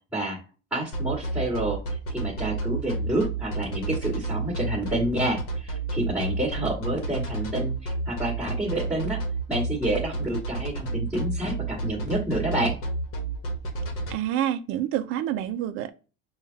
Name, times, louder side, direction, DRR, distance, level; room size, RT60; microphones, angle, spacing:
voice 1, 0.7-1.8 2.1-7.7 8.1-9.2 9.5-12.8, right 1 dB, ahead, 1.7 m, -28 dB
sound 1, 0.9-14.1, right 3 dB, 45° left, 1.1 m, -30 dB
voice 2, 14.1-15.9, right 11 dB, 45° right, 0.5 m, -27 dB
6.6 x 2.4 x 2.7 m
cardioid pair, 150°, 30 cm